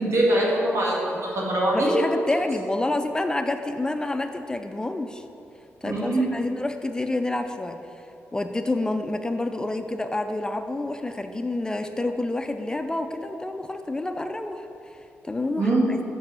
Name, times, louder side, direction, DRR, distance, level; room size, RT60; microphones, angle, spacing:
voice 1, 0.0-2.0 5.8-6.3 15.6-15.9, right 1 dB, 75° right, -4 dB, 1.7 m, -23 dB
voice 2, 1.7-5.2 5.8-7.8 8.3-14.7 15.2-16.0, left 2 dB, 15° left, 7 dB, 0.3 m, -28 dB
6.0 x 5.4 x 5.5 m, 2.8 s
cardioid pair, 105°, 5 cm